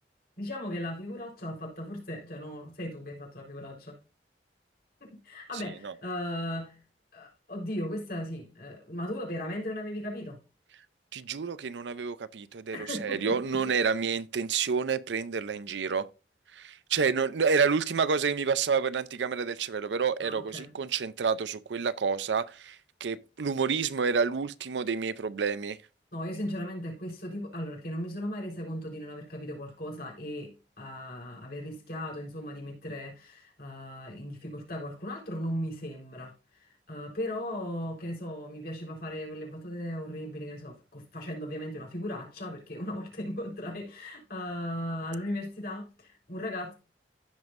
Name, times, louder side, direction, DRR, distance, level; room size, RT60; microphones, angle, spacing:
voice 1, 0.4-4.0 5.0-6.8 7.1-10.4 12.7-13.7 20.2-20.7 26.1-46.7, left 1 dB, 60° left, 3.9 m, -37 dB
voice 2, 11.1-16.1 16.5-25.8, right 5 dB, 85° right, 0.5 m, -29 dB
15.5 x 5.3 x 2.5 m
head